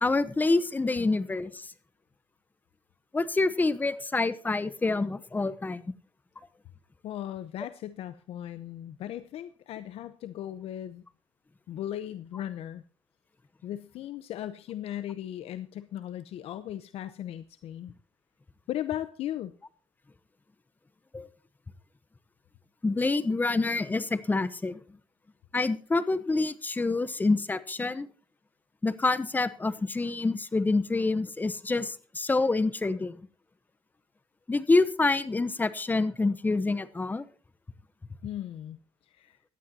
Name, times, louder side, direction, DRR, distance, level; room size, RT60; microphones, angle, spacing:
voice 1, 0.0-1.7 3.1-5.8 21.1-21.3 22.8-24.8 25.5-28.1 28.8-33.2 34.5-37.2, left 3 dB, 15° left, 15 dB, 0.9 m, -27 dB
voice 2, 7.0-11.0 11.7-12.8 13.6-17.9 18.7-19.5 38.2-39.4, left 11 dB, 75° left, 12 dB, 0.8 m, -37 dB
17.5 x 11.5 x 2.8 m, 0.40 s
cardioid pair, 115°, 10 cm